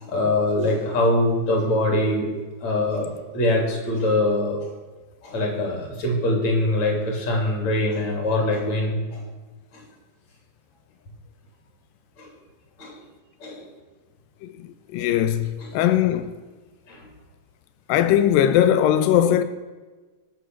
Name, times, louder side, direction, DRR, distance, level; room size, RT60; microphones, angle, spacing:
voice 1, 0.0-2.3 2.6-4.7 5.2-9.2 9.7-9.8 12.2-12.3 12.8-13.0 13.4-13.7 15.0-15.1 15.6-15.7 16.9-17.1, left 1 dB, 55° left, 4.1 m, -23 dB
voice 2, 14.4-16.4 17.9-19.4, left 10 dB, 90° left, 2.4 m, -20 dB
18.0 x 6.8 x 6.3 m
omnidirectional pair, 3.9 m